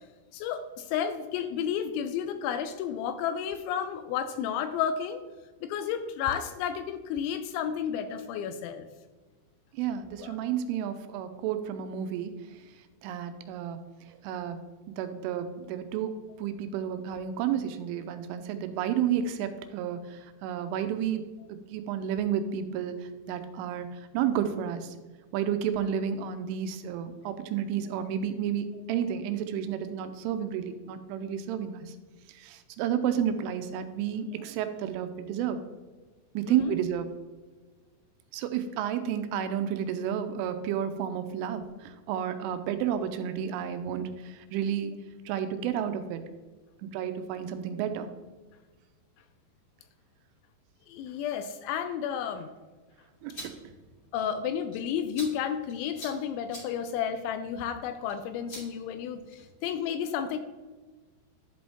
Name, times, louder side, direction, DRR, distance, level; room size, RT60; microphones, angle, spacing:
voice 1, 0.3-5.2 5.6-8.9 10.2-10.4 16.8-16.9 36.5-36.8 50.9-52.5 54.1-60.4, left 8 dB, 85° left, 9 dB, 2.7 m, -32 dB
voice 2, 9.8-12.3 13.0-13.8 14.2-14.6 15.0-16.1 16.4-21.2 21.7-23.0 23.3-23.9 24.1-24.9 25.3-31.8 32.4-35.6 36.3-37.1 38.3-45.0 45.3-46.2 46.8-48.1 53.2-53.6, right 9 dB, 90° right, 9 dB, 3.1 m, -31 dB
sound 1, 53.1-59.6, equal, 25° left, 2.7 m, -49 dB
11.5 x 5.1 x 3.6 m, 1.3 s
omnidirectional pair, 5.6 m